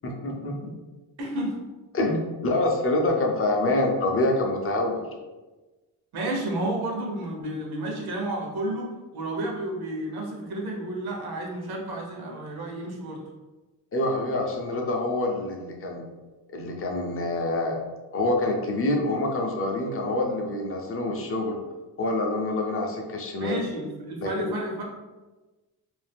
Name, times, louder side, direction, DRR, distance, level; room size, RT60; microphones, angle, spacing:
voice 1, 0.0-0.8 1.9-5.0 13.9-16.1 16.5-17.8 18.1-21.6 22.0-23.6 24.4-24.5, left 2 dB, 35° left, 1 dB, 0.6 m, -26 dB
voice 2, 1.2-1.6 6.1-13.2 23.4-24.8, right 1 dB, 70° right, -1 dB, 0.9 m, -31 dB
2.6 x 2.3 x 3.4 m, 1.2 s
cardioid pair, 120°, 39 cm